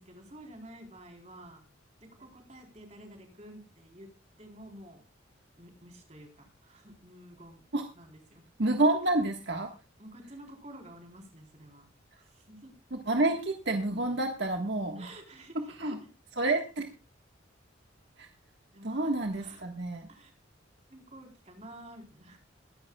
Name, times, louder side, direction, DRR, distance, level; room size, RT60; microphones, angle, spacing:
voice 1, 0.0-1.6 2.2-4.1 4.4-5.0 5.6-7.6 8.0-8.4 10.0-11.9 12.5-12.7 15.0-15.5 18.7-19.6 20.1-20.3 20.9-22.4, right 1 dB, 35° right, 3 dB, 3.9 m, -50 dB
voice 2, 8.6-9.7 12.9-15.1 15.5-16.0 16.3-16.9 18.2-18.3 18.8-20.1, right 2 dB, 60° right, 3 dB, 1.6 m, -29 dB
22.5 x 11.5 x 2.3 m, 0.31 s
head